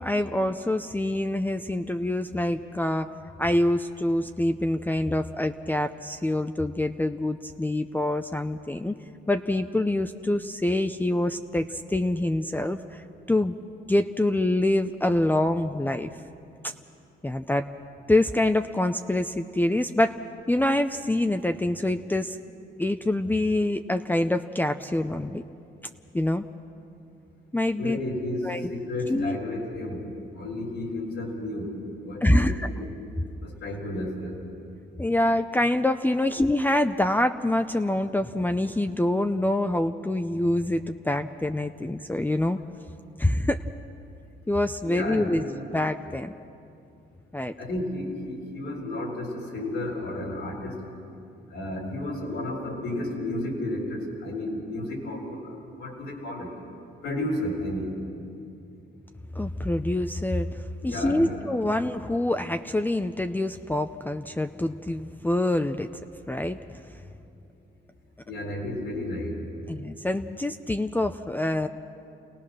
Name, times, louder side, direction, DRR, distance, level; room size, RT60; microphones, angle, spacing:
voice 1, 0.0-3.1 3.4-9.0 9.3-13.6 13.9-16.2 17.2-17.7 18.1-20.2 20.5-22.4 22.8-25.4 26.1-26.5 27.5-28.0 28.4-28.7 29.1-29.4 32.2-32.7 35.0-42.6 43.2-43.6 44.5-45.4 45.7-46.3 47.3-47.5 59.3-65.9 66.3-66.6 69.7-71.7, left 1 dB, 10° left, 7 dB, 0.6 m, -25 dB
voice 2, 27.8-30.0 30.4-31.7 32.0-32.9 33.4-34.4 44.8-45.5 47.6-50.8 51.5-56.5 57.0-57.9 60.8-61.4 68.3-69.4, left 1 dB, 90° left, -4 dB, 4.4 m, -32 dB
29.0 x 18.0 x 6.2 m, 2.6 s
cardioid pair, 90°, 20 cm